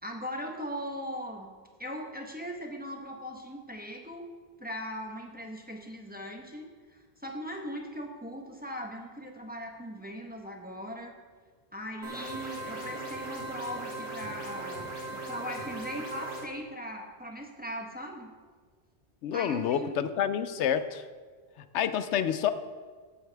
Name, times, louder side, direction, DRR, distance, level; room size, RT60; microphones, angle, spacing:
voice 1, 0.0-1.5 1.8-4.3 4.6-11.2 11.7-14.9 15.1-18.3 19.3-19.9, equal, 10° right, 2 dB, 1.0 m, -39 dB
sound 1, 12.0-16.4, right 1 dB, 65° right, 2.6 m, -38 dB
voice 2, 19.2-21.0 21.7-22.5, left 9 dB, 90° left, 11 dB, 0.9 m, -28 dB
15.5 x 7.9 x 3.4 m, 1.5 s
omnidirectional pair, 1.1 m